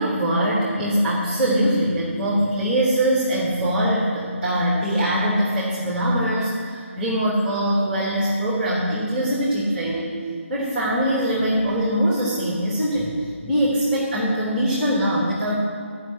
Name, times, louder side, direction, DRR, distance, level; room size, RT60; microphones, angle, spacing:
voice 1, 0.0-10.1 10.5-13.1 13.4-15.6, equal, 5° right, -4 dB, 1.3 m, -22 dB
11.0 x 5.6 x 7.7 m, 2.2 s
figure-of-eight pair, 165°, 7 cm